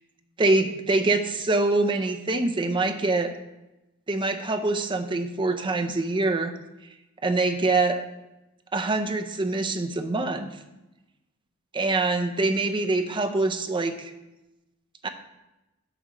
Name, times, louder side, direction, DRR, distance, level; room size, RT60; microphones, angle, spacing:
voice 1, 0.4-3.3 4.1-6.5 7.2-8.0 8.7-10.5 11.7-14.1 15.0-15.1, right 2 dB, 20° right, 6 dB, 0.5 m, -24 dB
9.0 x 3.0 x 6.5 m, 0.98 s
head